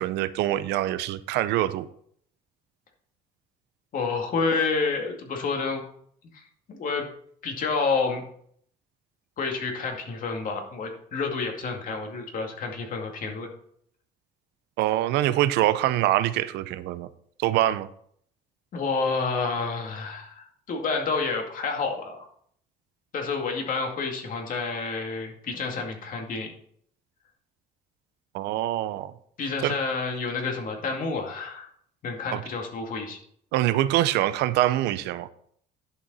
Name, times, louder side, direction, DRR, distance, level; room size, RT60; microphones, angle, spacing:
voice 1, 0.0-1.8 14.8-17.1 17.4-17.9 28.3-29.1 29.6-29.8 32.3-32.4 33.5-35.3, right 14 dB, 85° right, 0.6 m, -24 dB
voice 2, 3.9-5.8 6.3-7.1 7.4-8.2 9.4-13.5 18.7-22.2 23.1-26.5 29.4-31.7 32.0-33.2, left 4 dB, 55° left, 2.3 m, -29 dB
11.0 x 6.4 x 4.1 m
cardioid pair, 110°, 17 cm